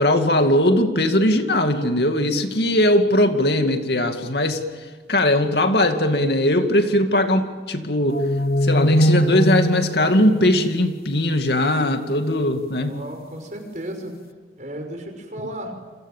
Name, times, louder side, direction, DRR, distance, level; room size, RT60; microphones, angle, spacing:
voice 1, 0.0-4.6 5.1-8.2 8.6-13.0, left 1 dB, 70° left, 6 dB, 2.4 m, -19 dB
sound 1, 8.1-11.5, equal, 55° left, 0.8 m, -21 dB
voice 2, 12.6-14.1 14.6-15.7, right 1 dB, 45° right, 4 dB, 5.9 m, -34 dB
29.5 x 26.5 x 7.5 m, 1.4 s
head